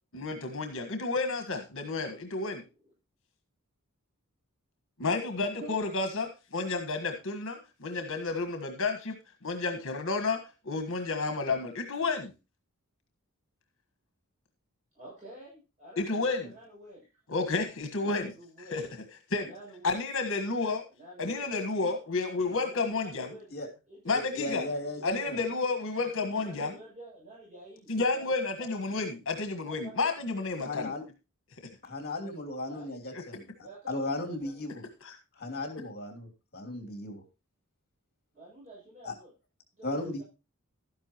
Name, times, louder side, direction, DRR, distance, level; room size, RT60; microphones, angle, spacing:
voice 1, 0.1-2.6 5.0-9.2 9.4-10.4 10.6-12.3 16.0-16.5 17.3-18.3 18.7-18.8 19.3-19.5 19.8-20.8 21.2-23.3 24.0-24.7 25.0-26.8 27.9-30.9 33.1-33.2 35.0-35.1, left 3 dB, 65° left, 5 dB, 1.6 m, -31 dB
voice 2, 14.9-17.1 18.0-18.8 19.4-20.1 20.9-21.5 22.4-23.5 23.9-26.0 26.4-29.0 29.6-30.1 32.7-32.9 33.6-34.7 38.3-39.3 39.8-40.2, right 1 dB, 35° right, -6 dB, 7.6 m, -49 dB
voice 3, 24.1-25.4 30.6-31.0 31.8-33.5 33.9-34.8 35.4-37.2 39.0-39.1 39.8-40.2, left 2 dB, 45° left, 5 dB, 3.0 m, -36 dB
12.5 x 10.5 x 3.0 m, 0.28 s
head